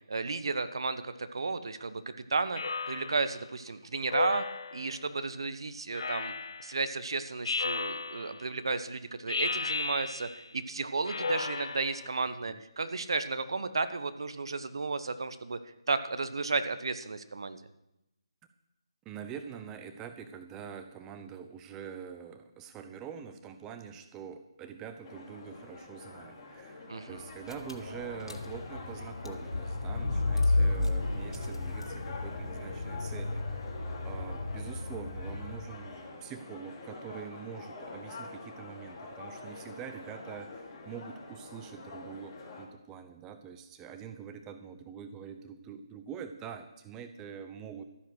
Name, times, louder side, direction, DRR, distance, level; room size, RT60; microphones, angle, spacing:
voice 1, 0.1-2.0 2.3-2.6 2.9-4.4 4.7-6.3 6.6-15.6 15.9-17.6 26.9-27.2, right 3 dB, 60° right, 11 dB, 1.0 m, -33 dB
Speech synthesizer, 2.6-3.4 4.1-5.0 5.9-6.8 7.4-8.5 9.3-10.5 11.1-12.1, left 4 dB, 60° left, 0.6 m, -34 dB
voice 2, 19.0-33.7 34.0-47.8, right 7 dB, 15° right, 8 dB, 0.8 m, -45 dB
sound 1, 25.0-42.7, left 3 dB, 20° left, 2.8 m, -46 dB
Car / Engine, 27.2-27.3 27.5-35.8, left 2 dB, 80° left, 2.1 m, -33 dB
13.5 x 9.8 x 6.4 m, 0.91 s
figure-of-eight pair, 150°, 3 cm